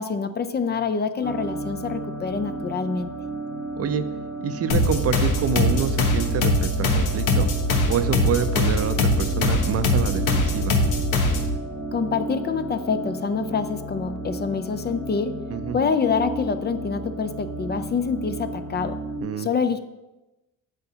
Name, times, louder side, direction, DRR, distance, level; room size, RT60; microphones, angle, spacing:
voice 1, 0.0-3.1 11.9-15.4 15.7-19.0 19.4-19.8, left 5 dB, 35° left, 10 dB, 0.5 m, -26 dB
sound 1, 1.2-19.2, right 1 dB, 55° left, 1.7 m, -33 dB
voice 2, 4.4-7.5 7.9-10.7 15.5-15.8 19.2-19.5, right 7 dB, 55° right, 11 dB, 0.5 m, -27 dB
sound 2, 4.7-11.6, left 2 dB, 90° left, 0.9 m, -22 dB
8.0 x 6.7 x 2.8 m, 1.0 s
cardioid pair, 90°, 30 cm